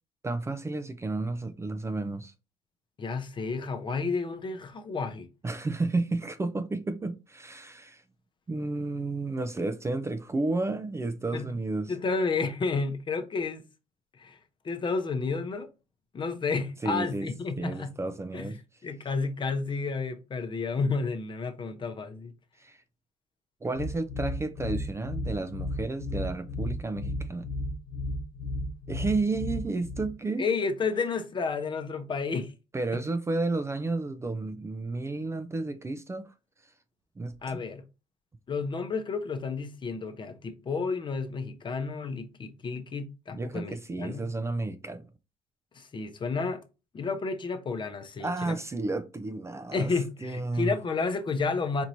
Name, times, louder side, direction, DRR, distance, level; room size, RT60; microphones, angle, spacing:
voice 1, 0.2-2.3 5.4-8.0 8.5-11.9 16.8-17.3 17.6-18.6 22.6-22.8 23.6-27.5 28.9-30.5 32.7-36.3 37.2-37.6 43.4-45.1 48.2-49.9 50.2-50.8, right 3 dB, 20° right, 0.5 m, -32 dB
voice 2, 3.0-5.3 11.3-11.5 11.9-13.6 14.2-14.4 14.6-15.7 16.1-17.9 18.3-18.5 18.8-22.3 30.4-32.5 32.9-33.0 37.4-37.8 38.5-44.3 45.7-46.6 46.9-48.6 49.7-51.8, left 4 dB, 35° left, 0.8 m, -31 dB
sound 1, 23.8-30.1, left 1 dB, 65° left, 0.7 m, -34 dB
4.4 x 2.9 x 2.6 m
supercardioid pair, 80°, 14 cm